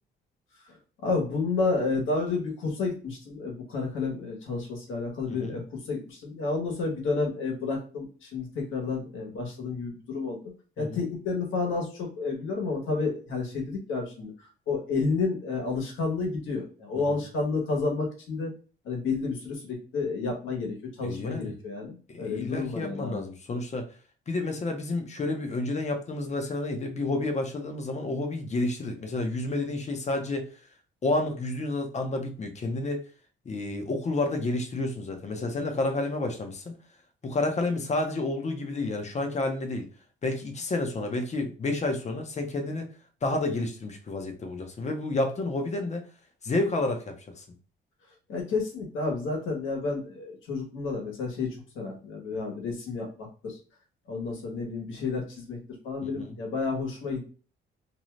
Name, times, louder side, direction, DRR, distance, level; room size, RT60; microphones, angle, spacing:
voice 1, 1.0-10.4 10.8-14.3 14.7-18.5 18.8-23.2 48.3-53.6 54.1-55.6 55.8-57.2, left 4 dB, 80° left, 1 dB, 1.1 m, -30 dB
voice 2, 21.0-21.5 22.1-23.9 24.3-30.5 31.0-33.0 33.4-36.7 37.2-39.9 40.2-42.9 43.2-46.0 46.4-47.4 56.0-56.4, left 2 dB, 35° left, 5 dB, 0.7 m, -30 dB
2.6 x 2.3 x 3.1 m, 0.38 s
cardioid pair, 90°, 20 cm